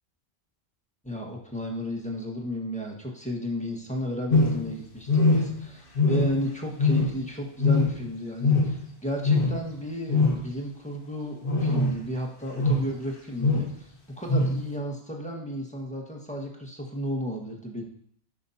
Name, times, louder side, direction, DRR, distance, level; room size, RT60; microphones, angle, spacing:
voice 1, 1.0-13.9 14.2-17.8, equal, 5° left, -2 dB, 1.5 m, -33 dB
sound 1, 4.3-4.8 5.1-5.7 5.9-6.5 6.8-7.3 7.6-8.1 8.4-8.9 9.2-9.6 10.1-10.5 11.4-12.0 12.5-12.9 13.4-13.7 14.3-14.6, left 3 dB, 45° left, 1.3 m, -23 dB
14.0 x 6.2 x 2.8 m, 0.64 s
omnidirectional pair, 1.3 m